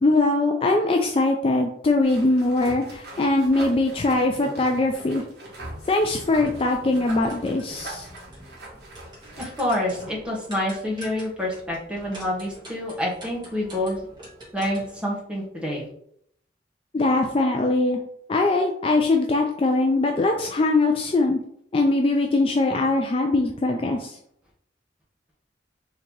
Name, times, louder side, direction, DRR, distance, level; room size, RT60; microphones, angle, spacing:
voice 1, 0.0-5.2 5.9-8.1 16.9-18.0 18.3-21.4 21.7-24.2, left 2 dB, 30° left, 3 dB, 0.3 m, -21 dB
sound 1, 2.0-10.2, right 1 dB, 60° right, 1.6 m, -41 dB
sound 2, 5.9-15.0, equal, 25° right, 1.5 m, -45 dB
voice 2, 9.4-14.0 14.5-15.9, left 1 dB, 5° right, -4 dB, 1.0 m, -27 dB
3.7 x 2.9 x 4.5 m, 0.70 s
head